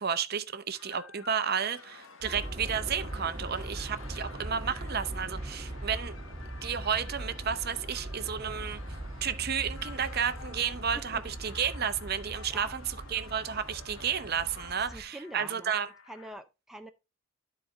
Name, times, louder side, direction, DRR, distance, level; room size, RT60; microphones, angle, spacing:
voice 1, 0.0-6.2 6.6-8.8 9.2-15.9, right 7 dB, 50° right, 0.7 m, -32 dB
sound 1, 0.7-16.3, left 4 dB, 85° left, 1.9 m, -56 dB
sound 2, 1.4-15.0, left 5 dB, 70° left, 0.9 m, -51 dB
Aircraft, 2.2-15.0, right 1 dB, 25° right, 1.4 m, -41 dB
voice 2, 14.9-15.8 16.1-16.9, right 1 dB, ahead, 0.4 m, -44 dB
12.5 x 4.2 x 3.7 m
head